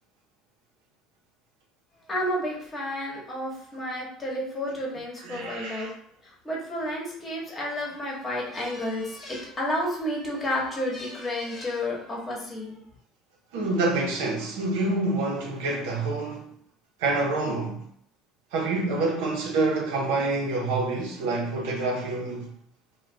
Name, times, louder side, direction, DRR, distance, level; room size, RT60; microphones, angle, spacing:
voice 1, 2.1-5.9 6.2-12.8, left 1 dB, 25° left, 1.0 m, -31 dB
voice 2, 5.2-5.9 13.5-16.5 17.0-17.8 18.5-22.5, right 2 dB, 85° right, 0.8 m, -27 dB
2.5 x 2.3 x 3.3 m
supercardioid pair, 115°, 0 cm